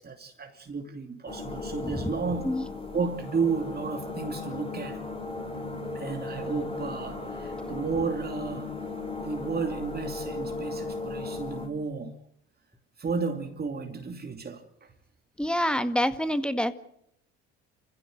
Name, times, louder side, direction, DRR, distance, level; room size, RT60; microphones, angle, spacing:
voice 1, 0.0-2.4 2.9-5.0 5.9-8.7 9.2-12.1 13.0-14.9, right 5 dB, 30° right, 2.6 m, -32 dB
sound 1, 1.3-11.7, left 3 dB, 20° left, 5.6 m, -36 dB
voice 2, 15.4-16.7, equal, 5° left, 1.8 m, -27 dB
29.0 x 15.5 x 8.0 m
hypercardioid pair, 70°, 31 cm